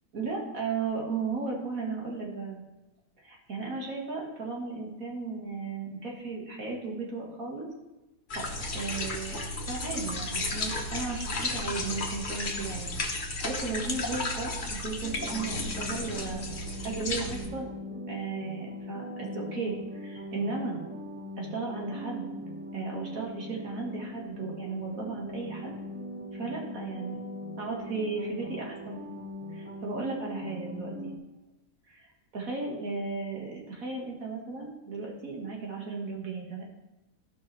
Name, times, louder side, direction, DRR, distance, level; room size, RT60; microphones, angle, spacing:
voice 1, 0.1-2.6 3.2-7.7 8.4-9.4 9.6-16.5 16.8-19.8 20.0-20.8 21.4-22.3 22.7-25.7 26.3-27.2 27.6-29.0 29.5-31.1 31.9-32.1 32.3-36.6, right 4 dB, 65° right, -2 dB, 2.1 m, -35 dB
sound 1, 8.3-17.5, left 2 dB, 35° left, 1.1 m, -33 dB
sound 2, 15.0-31.2, left 1 dB, 10° right, 1.2 m, -40 dB
15.0 x 5.6 x 3.2 m, 1.0 s
omnidirectional pair, 1.6 m